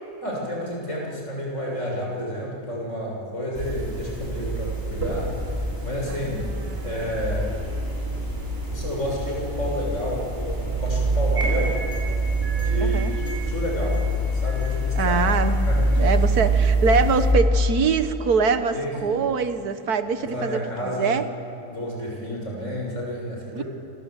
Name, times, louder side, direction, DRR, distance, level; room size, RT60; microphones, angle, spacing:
voice 1, 0.2-6.4 6.8-7.5 8.7-11.8 12.6-14.0 14.3-15.2 15.6-16.1 18.7-19.2 20.2-21.2 21.7-23.6, equal, 50° left, -2 dB, 7.1 m, -30 dB
sound 1, 3.6-17.3, right 1 dB, 40° right, 4.7 m, -25 dB
voice 2, 6.1-7.0 12.8-13.1 15.0-15.7 16.0-21.2 23.5-23.6, right 5 dB, 90° right, 10 dB, 1.8 m, -24 dB
sound 2, 11.3-16.4, right 2 dB, 25° right, 7.8 m, -36 dB
28.0 x 25.5 x 8.3 m, 3.0 s
omnidirectional pair, 1.6 m